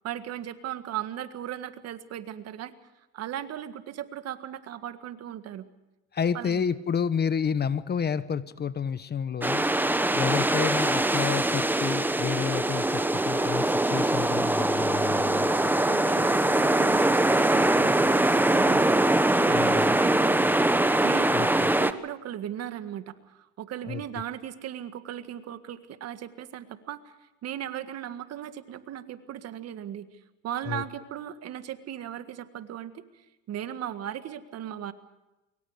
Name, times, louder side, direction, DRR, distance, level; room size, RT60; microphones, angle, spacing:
voice 1, 0.0-2.7 3.1-5.7 6.3-6.6 15.8-20.6 21.0-27.1 27.4-30.1 30.4-33.2 33.5-34.9, right 11 dB, 55° right, 10 dB, 1.8 m, -37 dB
voice 2, 6.1-9.6 10.1-15.7 19.5-20.0 21.3-21.7 23.8-24.0 30.7-30.8, left 7 dB, 35° left, 14 dB, 1.2 m, -30 dB
sound 1, 9.4-21.9, right 1 dB, 5° right, 1.2 m, -23 dB
26.0 x 23.5 x 5.0 m, 1.0 s
supercardioid pair, 90°, 30 cm